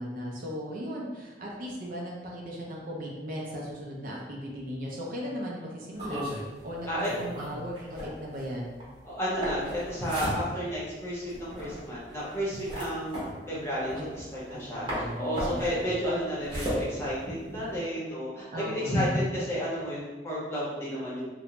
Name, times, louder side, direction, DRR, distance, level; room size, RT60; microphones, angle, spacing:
voice 1, 0.0-6.2 6.6-8.7 13.9-14.1 14.5-16.0 18.5-19.3, equal, 50° right, -2 dB, 0.5 m, -37 dB
sound 1, 5.9-14.6 14.9-17.8, equal, 30° right, 0.8 m, -36 dB
voice 2, 9.0-13.2 13.5-21.3, equal, 15° left, -8 dB, 0.8 m, -32 dB
2.5 x 2.1 x 2.9 m, 1.2 s
head